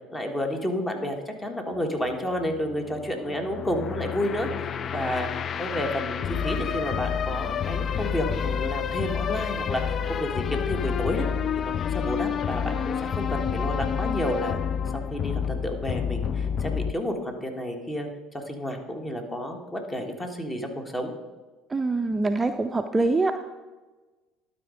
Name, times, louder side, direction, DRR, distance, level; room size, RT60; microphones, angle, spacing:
voice 1, 0.1-5.3 5.6-11.3 11.6-14.6 14.9-18.1 18.3-21.1, equal, 20° left, 4 dB, 1.5 m, -31 dB
sound 1, 1.7-16.9, left 7 dB, 45° left, 0.3 m, -29 dB
voice 2, 21.7-23.5, right 3 dB, 20° right, 7 dB, 0.5 m, -25 dB
11.5 x 4.2 x 5.0 m, 1.2 s
hypercardioid pair, 70°, 0 cm